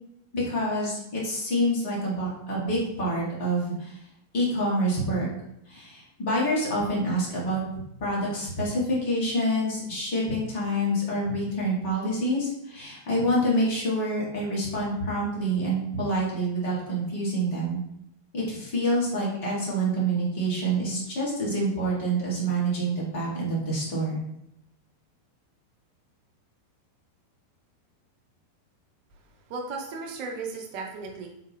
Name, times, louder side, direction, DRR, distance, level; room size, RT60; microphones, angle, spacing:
voice 1, 0.3-4.0 4.3-5.3 5.7-7.6 8.0-17.8 18.3-24.2, right 1 dB, 50° left, -5 dB, 1.4 m, -27 dB
voice 2, 29.5-31.3, right 4 dB, 45° right, 1 dB, 0.6 m, -35 dB
3.6 x 2.3 x 3.3 m, 0.79 s
figure-of-eight pair, 90°, 0 cm